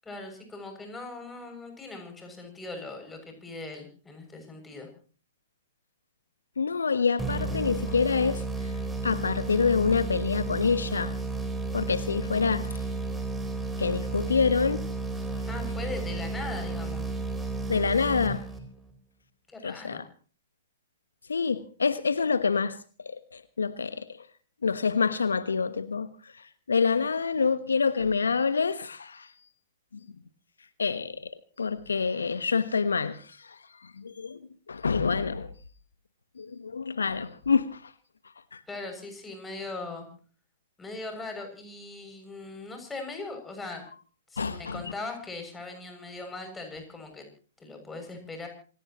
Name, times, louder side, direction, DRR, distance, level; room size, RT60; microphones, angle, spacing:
voice 1, 0.0-4.9 15.5-17.1 19.5-20.0 38.7-40.1 40.8-43.8 44.3-47.3 47.6-48.5, left 3 dB, 10° left, 7.0 m, -40 dB
voice 2, 6.6-8.7 9.0-11.1 11.7-12.8 13.8-14.8 17.7-18.4 19.6-20.0 21.3-24.3 24.6-29.3 30.8-34.4 34.7-35.5 36.4-37.9 38.5-38.6 44.4-44.8, left 5 dB, 75° left, 1.1 m, -27 dB
sound 1, 7.2-18.9, right 3 dB, 5° right, 4.2 m, -32 dB
27.5 x 17.5 x 3.0 m
figure-of-eight pair, 115°, 0 cm